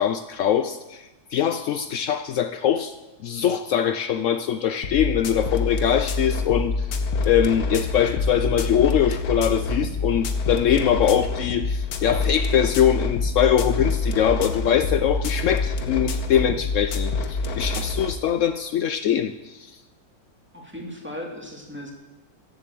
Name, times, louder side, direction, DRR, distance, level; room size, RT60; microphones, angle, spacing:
voice 1, 0.0-2.9 3.2-6.9 7.3-19.8, left 9 dB, 80° left, 11 dB, 0.7 m, -22 dB
sound 1, 4.8-18.2, left 3 dB, 60° left, 1.4 m, -26 dB
voice 2, 20.5-21.9, left 1 dB, 5° right, 0 dB, 2.2 m, -36 dB
14.5 x 8.1 x 7.6 m, 1.1 s
omnidirectional pair, 1.9 m